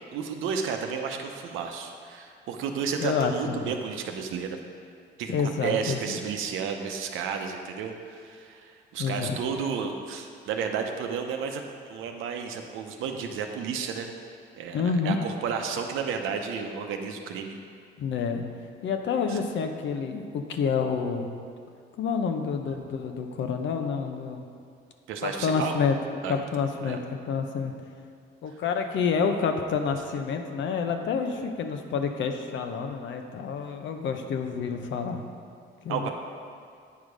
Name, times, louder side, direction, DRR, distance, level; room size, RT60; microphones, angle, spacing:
voice 1, 0.1-4.6 5.2-11.6 11.9-14.1 14.6-17.6 19.3-19.4 25.1-25.7 26.2-27.0 35.9-36.1, right 6 dB, 90° right, 4 dB, 0.8 m, -32 dB
voice 2, 3.0-3.7 5.3-6.2 9.0-9.4 14.7-15.2 18.0-18.4 18.8-21.3 22.0-24.4 25.2-26.0 26.3-27.7 28.4-35.2 35.8-36.1, left 6 dB, 70° left, 5 dB, 0.8 m, -28 dB
9.2 x 4.8 x 5.2 m, 2.3 s
cardioid pair, 90°, 20 cm